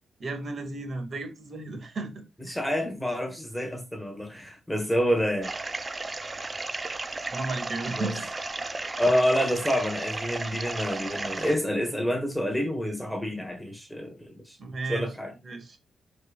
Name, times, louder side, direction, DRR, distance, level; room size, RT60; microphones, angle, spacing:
voice 1, 0.2-2.6 7.3-8.6 14.6-15.1 15.4-15.8, right 3 dB, 45° right, 2.2 m, -34 dB
voice 2, 2.4-5.5 7.9-8.1 9.0-14.6 14.9-15.3, equal, 5° left, 1.4 m, -28 dB
sound 1, 5.4-11.5, right 3 dB, 25° right, 0.8 m, -34 dB
12.0 x 5.0 x 2.4 m
cardioid pair, 125°, 0 cm